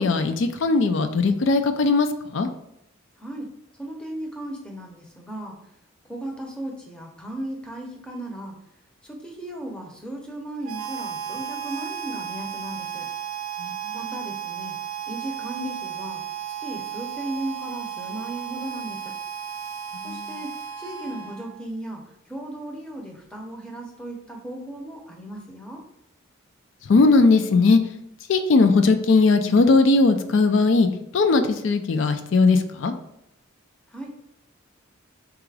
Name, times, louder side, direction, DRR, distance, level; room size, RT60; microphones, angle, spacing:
voice 1, 0.0-2.5 13.6-14.0 19.9-20.3 26.9-27.8 28.3-30.9 31.1-32.9, left 3 dB, 60° left, 8 dB, 0.4 m, -19 dB
voice 2, 3.2-3.5 3.8-5.6 6.1-8.6 9.0-13.1 13.9-14.8 15.1-16.2 16.6-19.1 20.0-25.8 33.9-34.1, right 1 dB, 5° left, 0 dB, 0.6 m, -36 dB
Harmonica, 10.6-21.7, right 9 dB, 75° right, 0.4 m, -34 dB
3.8 x 2.4 x 4.6 m, 0.78 s
head